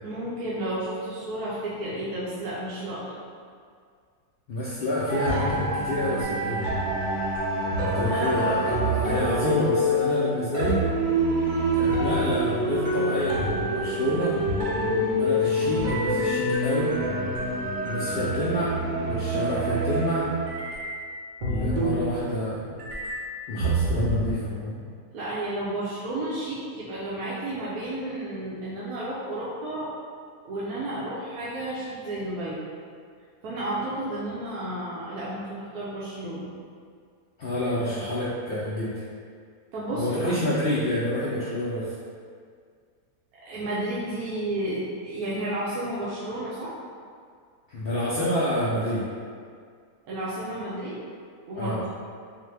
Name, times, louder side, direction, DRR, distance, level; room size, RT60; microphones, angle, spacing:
voice 1, 0.0-3.2 8.0-8.7 25.1-29.9 30.4-32.6 33.4-36.5 39.7-40.4 43.3-46.7 50.0-51.0 51.5-51.9, right 1 dB, 80° right, -9 dB, 1.1 m, -32 dB
voice 2, 4.5-6.6 7.8-10.8 11.8-14.4 14.7-16.9 17.8-18.7 19.0-20.3 21.5-22.8 23.5-24.8 37.4-39.0 39.9-41.9 47.7-49.0 51.6-51.8, left 1 dB, 90° left, -8 dB, 0.5 m, -28 dB
sound 1, 5.1-22.5 22.8-24.3, equal, 60° right, 0.5 m, -26 dB
4.0 x 2.1 x 3.2 m, 2.1 s
omnidirectional pair, 1.6 m